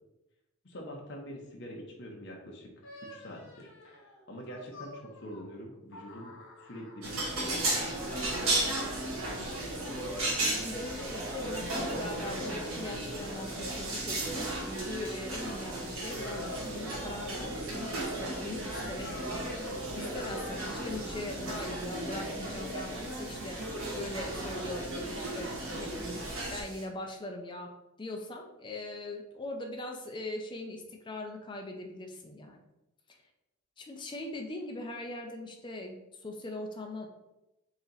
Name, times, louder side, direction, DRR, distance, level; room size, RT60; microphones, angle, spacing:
voice 1, 0.6-2.7 3.0-3.7 4.3-6.3 6.6-8.4, equal, 55° left, -1 dB, 0.9 m, -45 dB
sound 1, 2.8-7.3 7.7-9.2 9.8-10.8 11.2-12.2 12.8-15.6 16.2-17.2 17.5-21.0, left 1 dB, 80° left, 1.1 m, -51 dB
sound 2, 7.0-26.6, right 1 dB, 90° right, 1.3 m, -35 dB
sound 3, 9.0-26.9, right 3 dB, 60° right, 1.1 m, -51 dB
voice 2, 10.5-23.6 23.9-26.2 26.5-27.7 28.0-32.6 33.8-37.1, left 1 dB, 20° left, 2 dB, 0.5 m, -41 dB
4.0 x 2.9 x 4.0 m, 0.94 s
head